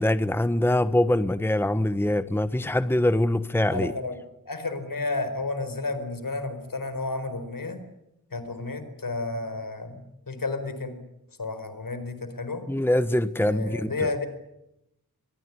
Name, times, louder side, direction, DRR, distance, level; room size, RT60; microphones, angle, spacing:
voice 1, 0.0-3.9 12.7-13.9, left 1 dB, 5° left, 13 dB, 1.1 m, -23 dB
voice 2, 3.7-4.2 4.5-7.8 8.3-10.9 11.4-12.6 13.4-14.3, left 3 dB, 65° left, 10 dB, 4.5 m, -31 dB
24.0 x 22.5 x 9.6 m, 0.87 s
wide cardioid pair, 60°, 35 cm